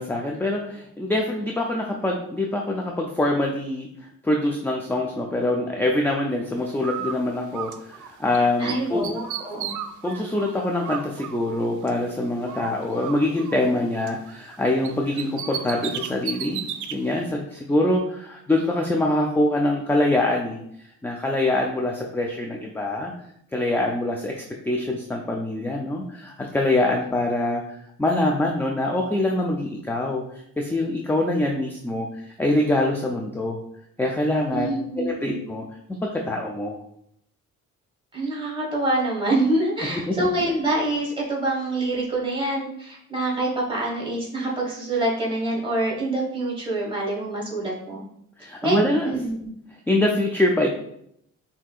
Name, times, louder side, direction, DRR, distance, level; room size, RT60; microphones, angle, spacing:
voice 1, 0.0-3.9 4.2-9.1 10.0-16.6 16.9-20.6 21.0-23.1 23.5-27.6 28.0-30.2 30.6-32.1 32.4-33.6 34.0-34.7 35.0-35.6 36.0-36.8 40.1-40.3 48.4-49.1 49.9-50.7, left 1 dB, 5° left, 0 dB, 0.4 m, -24 dB
Bird, 6.8-8.4 8.7-12.1 12.5-14.6 14.8-17.0, right 9 dB, 75° right, 0.5 m, -35 dB
voice 2, 8.6-9.7 34.5-35.4 38.1-48.0 48.6-49.5, right 2 dB, 15° right, -3 dB, 1.6 m, -26 dB
5.9 x 2.7 x 2.4 m, 0.72 s
cardioid pair, 115°, 31 cm